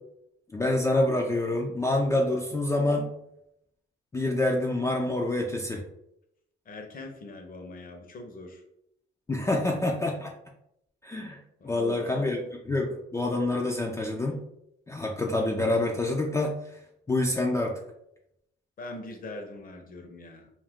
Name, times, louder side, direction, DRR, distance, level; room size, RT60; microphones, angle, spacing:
voice 1, 0.5-3.1 4.1-5.8 9.3-10.3 11.0-11.4 11.6-14.4 14.9-16.6 17.1-17.8, left 2 dB, 15° left, 0 dB, 0.3 m, -27 dB
voice 2, 6.7-8.6 11.6-12.3 18.8-20.5, left 2 dB, 45° left, 3 dB, 0.7 m, -41 dB
2.4 x 2.1 x 3.5 m, 0.79 s
cardioid pair, 90°, 20 cm